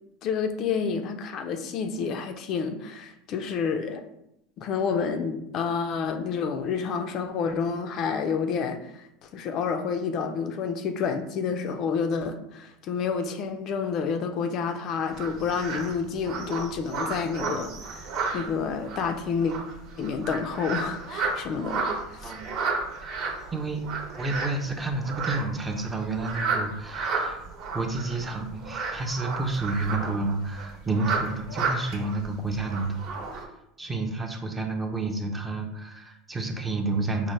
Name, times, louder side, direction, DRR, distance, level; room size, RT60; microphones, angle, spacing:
voice 1, 0.2-4.0 4.6-19.5 20.0-22.3, left 6 dB, 40° left, 6 dB, 0.4 m, -29 dB
sound 1, 15.1-33.4, right 4 dB, 50° right, 0.9 m, -32 dB
voice 2, 22.2-22.6 23.0-23.2 23.5-23.8 24.1-27.5 27.7-33.0 33.3-33.5 33.8-37.3, right 3 dB, 15° right, 3 dB, 0.5 m, -30 dB
5.2 x 2.1 x 3.1 m, 0.81 s
supercardioid pair, 140°, 0 cm